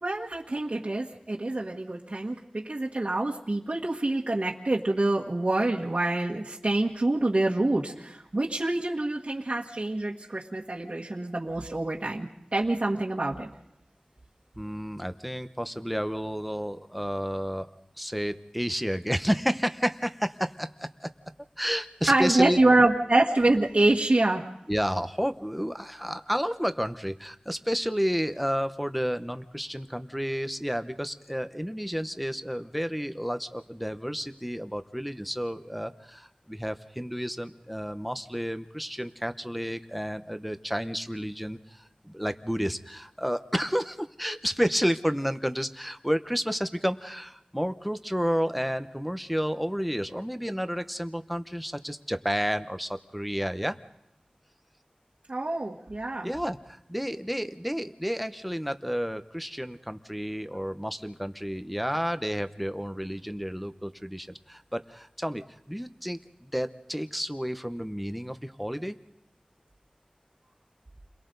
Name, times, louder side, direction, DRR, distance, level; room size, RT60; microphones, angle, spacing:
voice 1, 0.0-13.5 22.1-24.4 55.3-56.3, right 2 dB, 50° right, -4 dB, 1.7 m, -26 dB
voice 2, 14.6-17.7 18.0-20.7 21.0-21.1 21.6-22.6 24.7-53.8 56.2-65.4 65.7-69.0, equal, ahead, 9 dB, 1.0 m, -31 dB
30.0 x 22.0 x 4.0 m, 0.84 s
wide cardioid pair, 60°, 3 cm